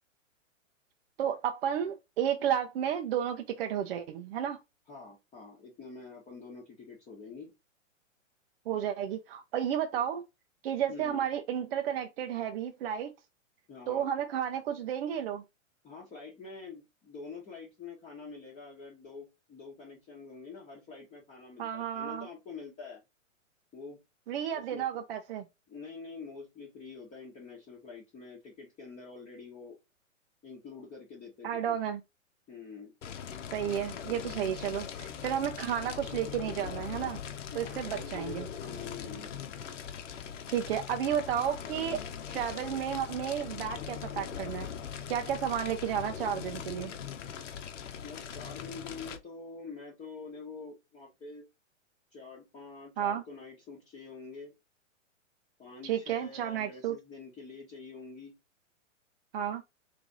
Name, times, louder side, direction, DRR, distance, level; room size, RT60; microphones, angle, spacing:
voice 1, 1.2-4.6 8.7-10.2 10.6-13.1 13.9-15.4 21.6-22.3 24.3-25.5 31.4-32.0 33.5-37.2 37.5-38.5 40.5-42.0 42.3-44.7 45.1-46.9 53.0-53.2 55.8-57.0 59.3-59.6, right 9 dB, 50° right, 0.6 m, -32 dB
voice 2, 4.9-7.5 10.9-11.2 13.7-14.1 15.8-23.0 23.7-24.0 24.5-24.9 25.7-29.8 30.4-31.8 32.5-32.9 37.5-39.3 48.0-51.5 52.1-54.5 55.6-58.3, left 4 dB, 15° left, 1.0 m, -46 dB
Fire, 33.0-49.2, left 8 dB, 65° left, 1.0 m, -41 dB
3.4 x 3.3 x 3.9 m
hypercardioid pair, 130°, 39 cm